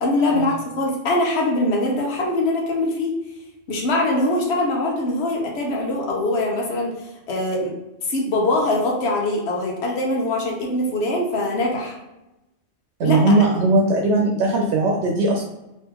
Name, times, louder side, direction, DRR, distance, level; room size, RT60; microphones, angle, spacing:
voice 1, 0.0-3.1 3.7-6.9 7.3-7.7 8.0-11.9 13.0-13.3, left 2 dB, 75° left, -1 dB, 1.1 m, -22 dB
voice 2, 13.0-15.5, right 2 dB, 90° right, 1 dB, 0.9 m, -19 dB
3.6 x 3.1 x 2.9 m, 0.95 s
omnidirectional pair, 1.1 m